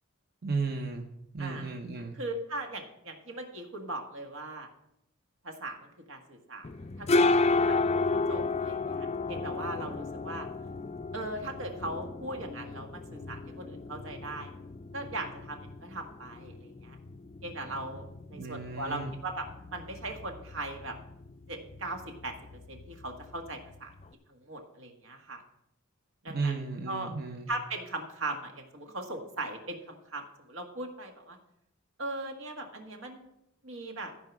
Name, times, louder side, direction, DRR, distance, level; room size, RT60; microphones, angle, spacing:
voice 1, 0.4-1.0 1.3-2.2 18.4-19.2 26.3-27.5, right 4 dB, 50° right, 2 dB, 0.9 m, -34 dB
voice 2, 2.1-4.7 5.4-6.7 7.0-10.5 11.1-14.5 14.9-17.0 17.4-19.4 19.7-20.9 21.5-22.3 22.7-23.9 24.3-25.4 26.2-26.5 26.9-27.1 27.5-31.4 32.0-33.3 33.6-34.1, right 2 dB, 80° right, 3 dB, 1.7 m, -39 dB
sound 1, 6.6-24.1, left 3 dB, 30° left, 0.4 m, -33 dB
14.5 x 4.9 x 6.0 m, 0.81 s
head